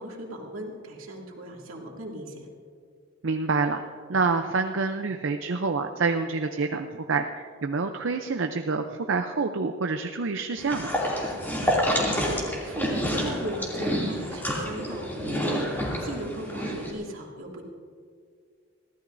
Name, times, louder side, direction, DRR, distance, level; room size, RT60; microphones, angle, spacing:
voice 1, 0.0-2.5 11.6-17.6, right 1 dB, 90° right, -1 dB, 2.5 m, -37 dB
voice 2, 3.2-3.8 4.1-11.0, right 4 dB, 70° right, 6 dB, 0.6 m, -27 dB
sound 1, 10.6-16.9, equal, 10° left, 2.6 m, -28 dB
24.0 x 16.0 x 2.6 m, 2.2 s
head